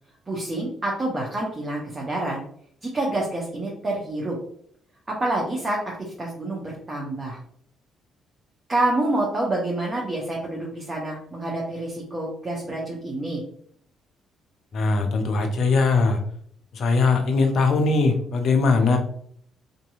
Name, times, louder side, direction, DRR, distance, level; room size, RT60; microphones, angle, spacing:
voice 1, 0.3-2.4 2.8-4.4 5.1-7.4 8.7-13.4, right 2 dB, 30° right, -3 dB, 0.7 m, -27 dB
voice 2, 14.7-16.2 16.7-19.0, left 3 dB, 55° left, 5 dB, 0.4 m, -20 dB
2.7 x 2.6 x 2.3 m, 0.63 s
figure-of-eight pair, 45°, 0 cm